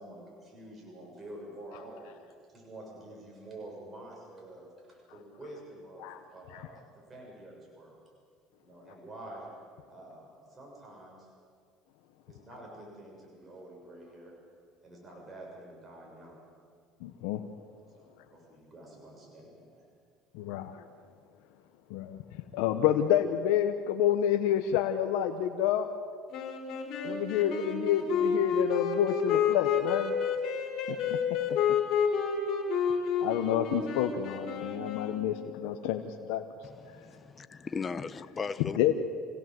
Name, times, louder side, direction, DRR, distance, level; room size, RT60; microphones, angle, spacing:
voice 1, 0.0-2.1 2.5-8.0 8.6-9.5 9.9-11.3 12.3-14.3 14.8-16.4 17.9-19.9, right 1 dB, 20° right, -2 dB, 6.7 m, -48 dB
voice 2, 17.0-17.4 20.3-20.8 21.9-22.2 22.5-25.9 27.0-30.1 30.9-31.2 33.2-36.4 38.7-38.9, left 10 dB, 85° left, 6 dB, 1.1 m, -28 dB
sound 1, 26.3-35.5, left 6 dB, 60° left, 4.7 m, -30 dB
voice 3, 36.6-38.8, left 5 dB, 25° left, 13 dB, 0.9 m, -37 dB
26.0 x 17.0 x 7.8 m, 2.1 s
supercardioid pair, 110°, 0 cm